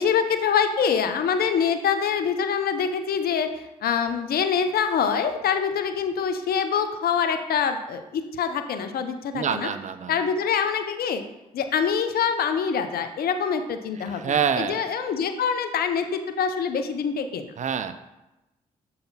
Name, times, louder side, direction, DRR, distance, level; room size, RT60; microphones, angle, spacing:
voice 1, 0.0-3.5 3.8-9.7 10.1-11.2 11.5-17.5, left 7 dB, 70° left, 8 dB, 0.6 m, -25 dB
voice 2, 9.3-10.1 14.1-14.8 17.6-17.9, right 7 dB, 50° right, 11 dB, 0.5 m, -26 dB
6.8 x 4.1 x 4.0 m, 0.95 s
supercardioid pair, 45°, 16 cm